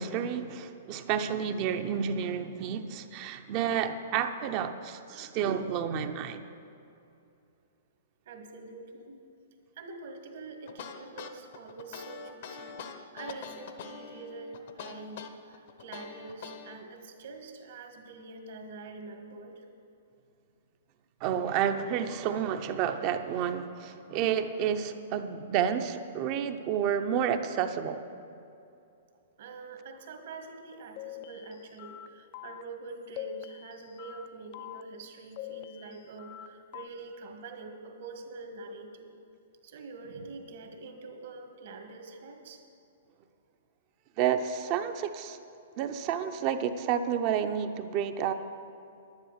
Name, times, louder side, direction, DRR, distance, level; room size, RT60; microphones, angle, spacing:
voice 1, 0.0-6.4 21.2-28.0 44.2-45.4 45.8-48.3, right 8 dB, 35° right, 8 dB, 0.7 m, -30 dB
voice 2, 8.3-9.2 9.8-12.8 13.1-19.6 29.4-39.1 39.6-42.6, right 3 dB, 65° right, 4 dB, 1.7 m, -45 dB
sound 1, 10.7-16.8, left 6 dB, 55° left, 0.9 m, -44 dB
sound 2, 31.0-32.1 32.3-32.6 33.2-34.3 34.5-34.8 35.4-36.5 36.7-36.9, left 13 dB, 40° left, 0.4 m, -43 dB
10.5 x 9.6 x 6.6 m, 2.6 s
hypercardioid pair, 150°, 0 cm